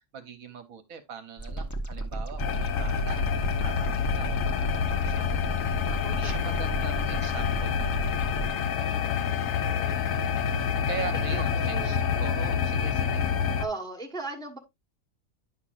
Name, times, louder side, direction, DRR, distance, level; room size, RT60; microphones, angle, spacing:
voice 1, 0.0-5.6 6.1-8.2 8.8-9.2 10.9-13.3, right 6 dB, 65° right, 1.2 m, -41 dB
sound 1, 1.4-8.5, right 2 dB, 30° left, 0.3 m, -34 dB
sound 2, 2.4-13.7, left 7 dB, 65° left, 1.0 m, -27 dB
voice 2, 5.8-7.1 9.6-10.6 11.1-12.0 13.6-14.6, right 3 dB, 5° left, 1.0 m, -40 dB
9.9 x 5.8 x 2.4 m
omnidirectional pair, 1.6 m